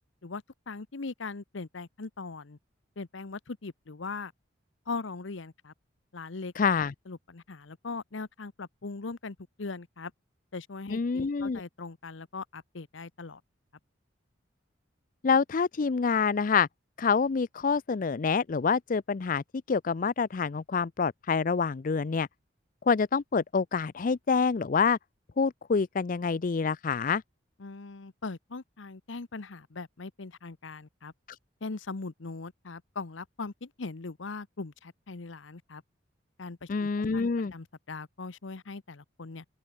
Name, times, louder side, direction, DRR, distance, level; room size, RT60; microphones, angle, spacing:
voice 1, 0.2-2.6 3.0-4.3 4.9-5.7 6.1-6.5 7.1-10.1 10.5-13.4 27.6-31.1 31.6-35.8 36.4-39.4, left 3 dB, 85° left, 0.9 m, -40 dB
voice 2, 6.6-6.9 10.9-11.6 15.2-16.7 17.0-22.3 22.9-25.0 25.4-27.2 36.7-37.5, left 5 dB, 45° left, 0.4 m, -27 dB
open air
head